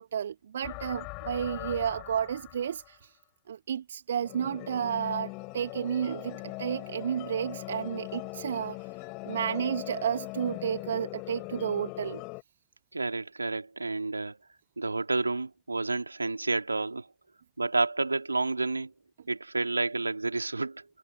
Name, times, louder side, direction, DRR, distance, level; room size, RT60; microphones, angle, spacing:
voice 1, 0.0-3.1 3.5-8.8 9.2-12.2, right 8 dB, 65° right, 1.7 m, -32 dB
sound 1, 0.6-2.9 4.2-12.4, left 28 dB, 45° left, 5.9 m, -40 dB
voice 2, 12.9-14.4 14.8-17.1 17.6-18.9 19.3-20.8, right 3 dB, 80° right, 3.3 m, -30 dB
figure-of-eight pair, 90°, 0 cm